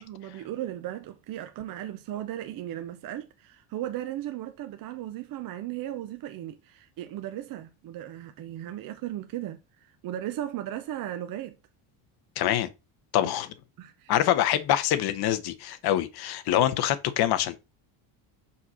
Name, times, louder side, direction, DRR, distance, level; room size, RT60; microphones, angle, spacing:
voice 1, 0.0-11.6 13.2-13.3 13.8-14.1, right 12 dB, 45° right, 0.7 m, -36 dB
voice 2, 12.4-12.7 13.1-13.5 14.1-17.6, left 12 dB, 50° left, 1.0 m, -25 dB
5.6 x 4.2 x 6.1 m
cardioid pair, 170°, 50 cm